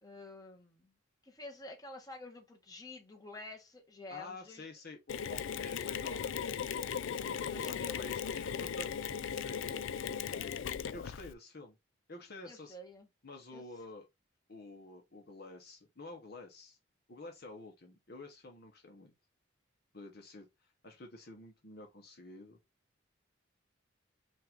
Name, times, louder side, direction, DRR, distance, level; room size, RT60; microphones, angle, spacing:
voice 1, 0.0-0.9 1.2-4.7 7.5-8.1 12.4-13.1 13.5-13.6, left 2 dB, 20° left, 1.3 m, -49 dB
voice 2, 4.1-6.5 7.1-8.9 9.1-10.6 10.9-11.8 12.1-12.7 13.2-14.0 14.5-16.8 17.1-19.1 19.9-22.6, left 2 dB, 55° left, 1.1 m, -50 dB
Mechanisms, 5.1-11.3, left 7 dB, 80° left, 0.4 m, -37 dB
5.4 x 2.6 x 3.6 m
head